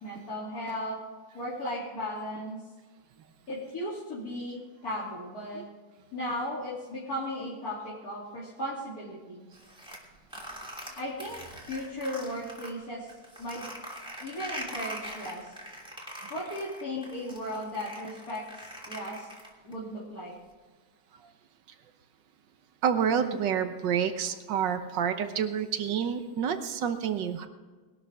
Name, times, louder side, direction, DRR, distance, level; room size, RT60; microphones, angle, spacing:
voice 1, 0.0-1.0 1.3-2.6 3.5-5.6 6.1-9.5 11.0-11.4 11.7-13.1 13.4-13.6 14.2-15.5 16.3-19.3 19.6-20.3, left 1 dB, 55° left, -9 dB, 3.4 m, -36 dB
sound 1, 9.5-12.7 13.1-19.7, equal, 5° right, 3.0 m, -42 dB
voice 2, 22.8-27.5, right 8 dB, 85° right, 9 dB, 1.7 m, -28 dB
20.5 x 12.5 x 3.5 m, 1.4 s
omnidirectional pair, 1.9 m